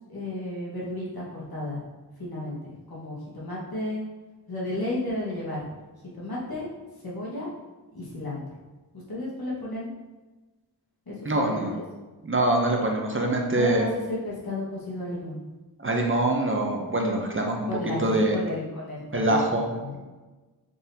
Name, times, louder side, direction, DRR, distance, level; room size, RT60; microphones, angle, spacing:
voice 1, 0.1-1.8 2.2-4.0 4.5-5.7 6.1-6.7 7.0-7.5 7.9-8.4 9.1-9.9 11.1-11.8 13.6-15.4 17.7-20.0, left 1 dB, 65° left, -7 dB, 1.5 m, -33 dB
voice 2, 11.2-11.8 12.2-13.9 15.8-17.7 18.0-18.4 19.1-20.0, right 1 dB, 30° right, 1 dB, 0.7 m, -24 dB
3.9 x 3.7 x 2.8 m, 1.2 s
wide cardioid pair, 50°, 39 cm